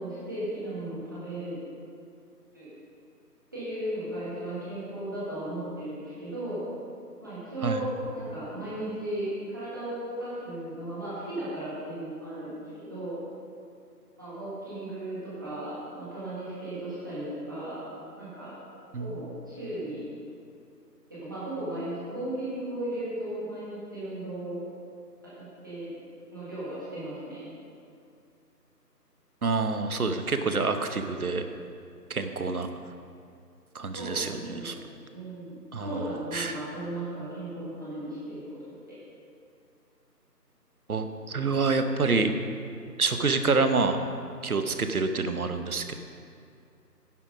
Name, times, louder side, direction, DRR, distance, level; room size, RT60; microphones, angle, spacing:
voice 1, 0.0-1.5 2.5-2.7 3.5-6.6 7.2-13.2 14.2-17.8 18.2-18.5 19.0-20.0 21.1-24.6 25.3-26.0 26.3-27.4 33.9-34.8 35.1-39.0, right 1 dB, 10° right, -11 dB, 1.5 m, -36 dB
voice 2, 18.9-19.2 29.4-31.4 32.1-32.7 33.7-34.8 35.7-36.0 36.3-36.6 40.9-42.3 43.0-44.0 44.4-46.0, right 4 dB, 60° right, 7 dB, 0.9 m, -27 dB
10.5 x 7.5 x 5.2 m, 2.4 s
figure-of-eight pair, 170°, 49 cm